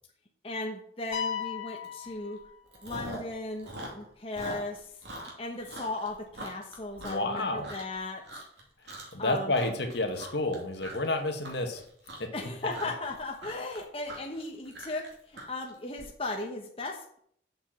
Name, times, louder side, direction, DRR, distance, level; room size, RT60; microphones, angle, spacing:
voice 1, 0.4-2.4 2.8-8.3 9.2-9.5 12.3-17.2, left 2 dB, 30° left, 1 dB, 1.0 m, -37 dB
sound 1, 1.1-3.0, left 7 dB, 85° left, 2.0 m, -36 dB
Chewing mastication, 1.8-2.1 2.4-3.3 3.6-8.0 8.2-8.6 8.9-9.3 9.5-16.0, right 1 dB, 65° right, 2.8 m, -43 dB
voice 2, 7.0-7.7 9.1-11.8 12.2-12.3, left 2 dB, 65° left, 4 dB, 1.6 m, -30 dB
7.8 x 5.9 x 7.4 m, 0.66 s
head